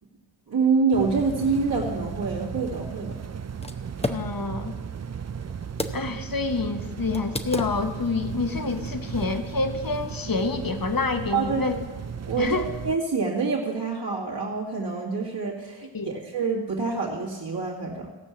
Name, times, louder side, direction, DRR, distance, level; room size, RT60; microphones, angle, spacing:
voice 1, 0.5-3.2 11.3-11.7 12.3-18.1, right 4 dB, 60° right, -5 dB, 2.3 m, -26 dB
sound 1, 0.9-13.0, right 7 dB, 35° right, 0.5 m, -35 dB
sound 2, 2.5-6.3 6.5-6.6 7.1-8.1, left 2 dB, 15° left, 0.7 m, -35 dB
voice 2, 4.1-4.7 5.9-11.8 12.4-12.7 15.9-16.1, left 3 dB, 45° left, 8 dB, 1.1 m, -27 dB
16.0 x 5.4 x 7.3 m, 1.3 s
cardioid pair, 50°, 47 cm